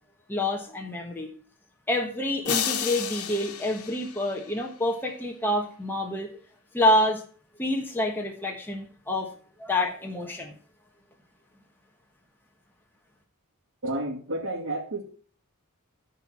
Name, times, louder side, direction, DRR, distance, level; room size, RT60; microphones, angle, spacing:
voice 1, 0.3-1.3 1.9-6.3 6.7-7.2 7.6-9.3 9.6-10.5, left 1 dB, 10° left, 1 dB, 1.4 m, -27 dB
sound 1, 2.4-4.8, left 8 dB, 80° left, 1.3 m, -32 dB
voice 2, 13.8-15.0, right 1 dB, 60° right, -5 dB, 2.5 m, -31 dB
13.5 x 4.7 x 5.6 m, 0.43 s
head